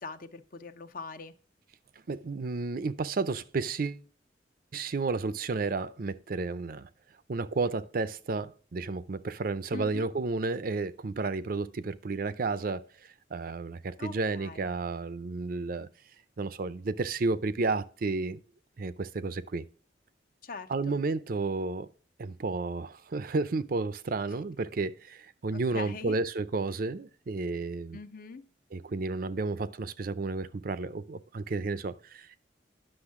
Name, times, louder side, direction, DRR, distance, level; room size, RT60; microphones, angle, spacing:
voice 1, 0.0-1.3 9.7-10.1 14.0-14.7 20.4-21.0 25.5-26.2 27.9-28.5, left 4 dB, 50° left, 0.7 m, -42 dB
voice 2, 2.1-4.0 4.7-6.9 7.3-15.9 16.4-18.4 18.8-19.6 20.7-21.9 22.2-28.0 28.7-32.4, right 3 dB, 50° right, 0.5 m, -32 dB
9.9 x 6.4 x 3.6 m
head